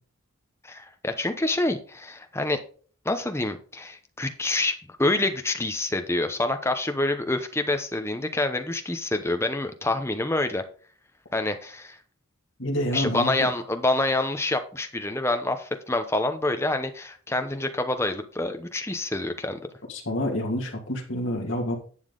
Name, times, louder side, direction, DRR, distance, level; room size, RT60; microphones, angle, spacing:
voice 1, 0.6-2.6 3.0-10.6 11.3-12.0 12.9-19.6, left 2 dB, 10° left, 7 dB, 0.8 m, -27 dB
voice 2, 12.6-13.5 19.9-21.8, left 1 dB, 60° left, 1 dB, 2.4 m, -28 dB
11.0 x 7.2 x 3.9 m, 0.43 s
head